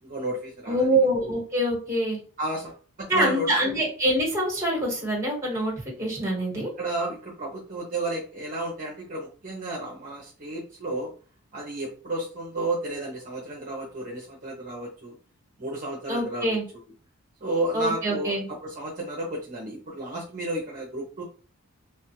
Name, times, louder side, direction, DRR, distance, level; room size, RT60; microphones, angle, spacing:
voice 1, 0.0-0.9 2.4-3.5 6.5-11.1 11.5-15.2 15.6-16.6 17.4-21.2, right 1 dB, 35° right, -2 dB, 0.6 m, -32 dB
voice 2, 0.7-2.2 3.1-5.7 6.0-6.7 16.1-16.6 17.7-18.4, right 1 dB, 10° right, -2 dB, 1.1 m, -25 dB
3.0 x 2.3 x 3.0 m, 0.40 s
head